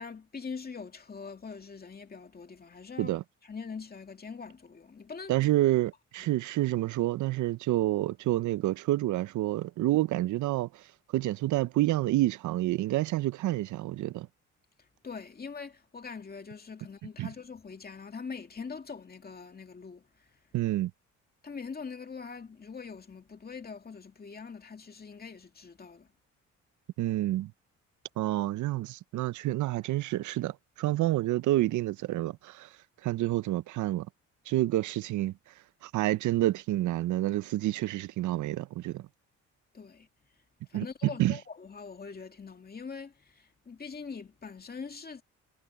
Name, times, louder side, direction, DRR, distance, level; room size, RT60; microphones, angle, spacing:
voice 1, 0.0-5.3 6.2-6.3 14.8-20.4 21.4-26.1 39.7-40.1 40.7-45.2, left 5 dB, 30° left, 2.3 m, -43 dB
voice 2, 5.3-10.8 11.1-14.3 17.2-17.3 20.5-20.9 27.0-27.5 28.2-32.7 33.0-34.1 34.5-35.3 35.8-39.0 40.7-40.9 41.2-41.4, right 16 dB, 75° right, 0.6 m, -28 dB
cardioid pair, 90°, 30 cm